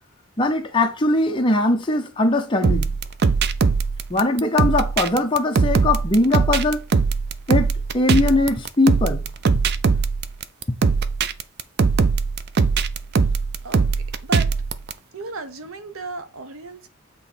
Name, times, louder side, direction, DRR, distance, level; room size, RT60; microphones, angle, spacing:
voice 1, 0.4-2.9 4.1-6.8 7.5-9.2, left 2 dB, 20° left, 0.7 m, -20 dB
sound 1, 2.6-14.9, right 4 dB, 50° right, 0.4 m, -20 dB
voice 2, 13.6-14.5 15.1-16.9, right 2 dB, 75° right, 0.7 m, -34 dB
7.7 x 3.0 x 4.2 m
head